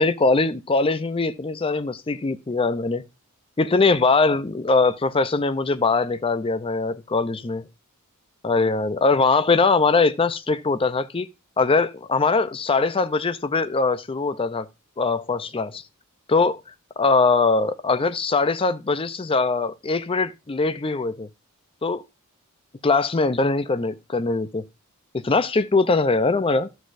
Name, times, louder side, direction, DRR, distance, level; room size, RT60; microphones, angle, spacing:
voice 1, 0.0-3.0 3.6-7.6 8.4-11.3 11.6-14.7 15.0-15.8 16.3-16.6 17.0-21.3 21.8-22.0 22.8-24.6 25.1-26.7, left 3 dB, 25° left, 0.5 m, -21 dB
13.0 x 6.2 x 2.6 m
head